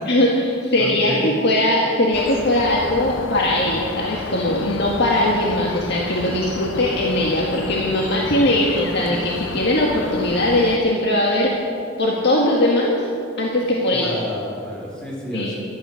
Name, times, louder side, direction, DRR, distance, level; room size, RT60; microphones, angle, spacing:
voice 1, 0.1-11.5 12.0-13.1 13.4-14.1 15.3-15.5, left 1 dB, 65° left, -2 dB, 1.7 m, -20 dB
voice 2, 0.7-1.3 13.9-15.5, equal, 5° left, -5 dB, 4.7 m, -29 dB
sound 1, 2.1-10.8, left 3 dB, 90° left, 0.7 m, -32 dB
15.5 x 12.5 x 6.4 m, 2.5 s
head